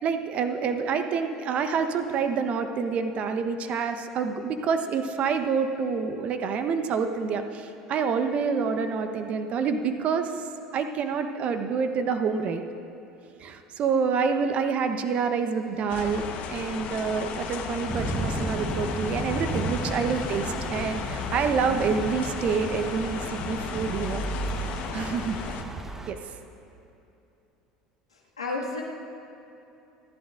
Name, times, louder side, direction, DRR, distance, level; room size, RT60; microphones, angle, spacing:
voice 1, 0.0-10.3 10.7-12.6 13.4-24.2 24.6-24.7 24.9-25.4 26.1-26.2, right 5 dB, 45° right, 8 dB, 1.0 m, -27 dB
sound 1, 15.6-24.9, right 2 dB, 75° right, 2.1 m, -51 dB
sound 2, 15.9-25.6, left 5 dB, 50° left, 1.1 m, -34 dB
sound 3, 17.9-26.1, right 1 dB, 15° right, 1.2 m, -34 dB
voice 2, 28.1-28.8, left 3 dB, 85° left, -3 dB, 1.9 m, -32 dB
29.5 x 11.0 x 2.6 m, 2.8 s
figure-of-eight pair, 70°, 3 cm